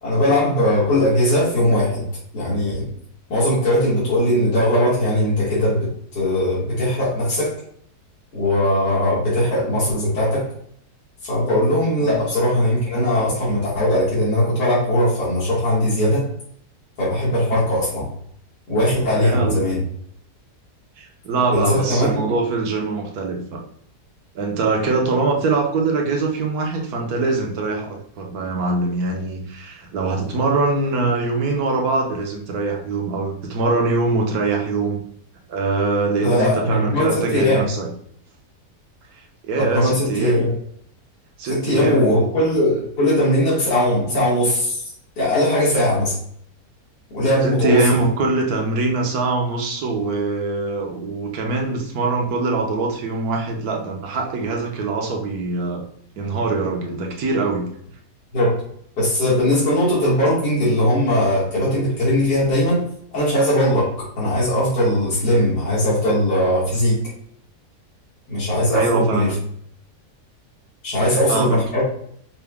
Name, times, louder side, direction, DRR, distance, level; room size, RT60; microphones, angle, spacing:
voice 1, 0.0-2.0 2.3-2.9 3.3-7.5 8.3-10.5 11.2-16.3 17.0-18.1 18.7-19.8 21.5-22.3 36.2-37.7 39.6-40.5 41.5-44.9 45.2-46.2 47.1-48.0 58.3-58.6 59.0-62.8 63.1-67.1 68.3-69.3 70.8-71.8, left 1 dB, 85° left, -8 dB, 2.3 m, -19 dB
voice 2, 19.2-19.6 21.0-23.6 24.3-35.0 35.5-37.9 39.1-40.5 41.4-42.3 47.4-55.8 56.2-57.7 68.7-69.4 71.0-71.6, right 3 dB, 70° right, 1 dB, 1.4 m, -23 dB
5.7 x 2.3 x 3.4 m, 0.66 s
omnidirectional pair, 1.7 m